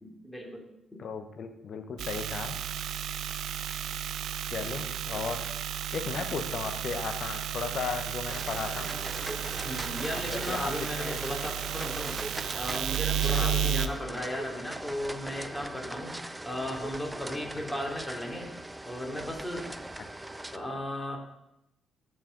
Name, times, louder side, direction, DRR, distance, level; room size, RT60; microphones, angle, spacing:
voice 1, 0.0-0.7 0.9-1.0 4.7-5.2 9.6-12.2 12.6-18.5 18.9-19.7 20.5-21.2, left 1 dB, 15° left, 0 dB, 2.7 m, -36 dB
voice 2, 1.0-2.6 4.5-5.4 5.9-8.9 10.1-11.2 13.3-13.6, left 5 dB, 60° left, 8 dB, 0.9 m, -35 dB
sound 1, 2.0-13.9, right 9 dB, 70° right, 0.4 m, -33 dB
sound 2, 8.3-20.6, right 1 dB, 10° right, 0.4 m, -40 dB
14.0 x 4.8 x 3.8 m, 0.84 s
hypercardioid pair, 45°, 0 cm